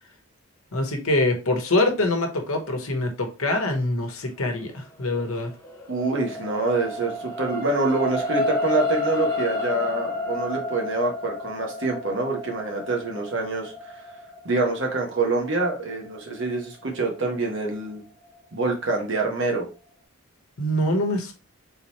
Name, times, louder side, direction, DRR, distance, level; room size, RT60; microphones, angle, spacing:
voice 1, 0.7-5.5 20.6-21.3, left 1 dB, 75° left, 4 dB, 1.1 m, -24 dB
sound 1, 5.2-17.7 18.2-18.4, left 2 dB, 15° left, 0.8 m, -31 dB
voice 2, 5.9-14.0 14.4-18.0 18.5-19.7, right 3 dB, 55° right, 0 dB, 1.1 m, -26 dB
3.9 x 3.0 x 4.1 m, 0.32 s
head